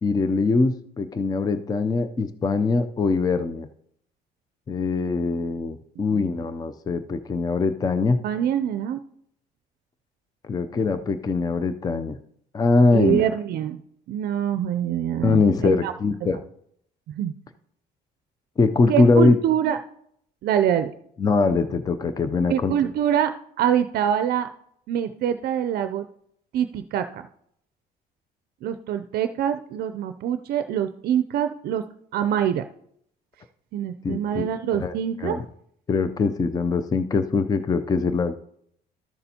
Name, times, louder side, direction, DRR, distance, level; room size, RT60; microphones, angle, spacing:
voice 1, 0.0-3.7 4.7-8.2 10.4-12.2 12.5-13.3 15.2-16.4 18.6-19.4 21.2-22.7 34.0-34.9 35.2-35.4 35.9-38.3, left 4 dB, 20° left, 11 dB, 0.4 m, -22 dB
voice 2, 8.2-9.0 10.7-10.8 12.9-13.8 14.1-15.9 16.2-16.3 17.1-17.3 18.9-19.8 20.4-20.9 22.5-24.5 24.9-26.1 26.5-27.3 28.6-31.8 32.1-32.6 33.7-35.4, right 10 dB, 65° right, 9 dB, 0.4 m, -25 dB
13.5 x 6.7 x 2.8 m, 0.70 s
cardioid pair, 110°, 17 cm